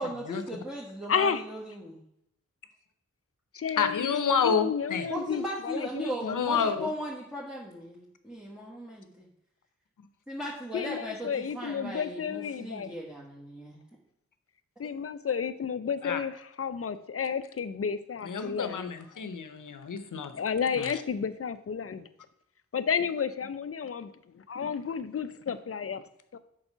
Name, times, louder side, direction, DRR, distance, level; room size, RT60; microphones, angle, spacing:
voice 1, 0.0-2.0 5.1-9.3 10.3-13.8, equal, ahead, -5 dB, 1.4 m, -37 dB
voice 2, 1.1-1.4 3.5-4.1 4.4-6.4 10.7-12.9 14.8-18.9 20.3-22.1 22.7-24.1 24.4-26.0 26.3-26.4, left 6 dB, 50° left, 13 dB, 0.6 m, -31 dB
voice 3, 3.8-5.1 6.2-6.9 16.0-16.2 18.2-20.3 20.8-21.0, left 6 dB, 90° left, 10 dB, 0.8 m, -29 dB
7.1 x 4.9 x 5.5 m, 0.77 s
wide cardioid pair, 85°, 30 cm